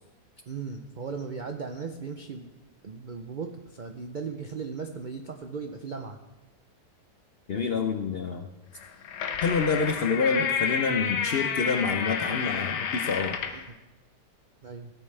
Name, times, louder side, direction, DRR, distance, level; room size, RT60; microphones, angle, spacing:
voice 1, 0.5-2.5 2.8-6.2 13.5-13.6 14.6-14.9, right 5 dB, 85° right, 5 dB, 0.4 m, -37 dB
voice 2, 7.5-8.5 9.4-13.3, left 5 dB, 60° left, 5 dB, 0.6 m, -27 dB
sound 1, 8.8-13.6, left 7 dB, 85° left, 1.5 m, -30 dB
16.5 x 8.9 x 3.3 m, 1.1 s
omnidirectional pair, 1.7 m